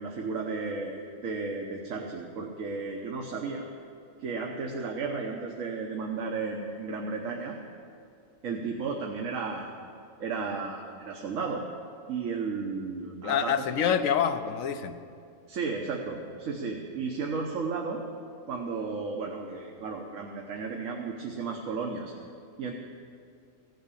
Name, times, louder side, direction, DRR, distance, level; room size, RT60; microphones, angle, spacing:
voice 1, 0.0-3.6 4.2-7.6 8.4-9.7 10.2-11.6 12.1-13.6 15.5-18.0 18.5-22.1 22.6-22.7, right 4 dB, 80° right, 1 dB, 1.3 m, -34 dB
voice 2, 13.2-15.0, left 8 dB, 90° left, 9 dB, 1.1 m, -26 dB
16.0 x 6.5 x 8.3 m, 2.4 s
omnidirectional pair, 1.3 m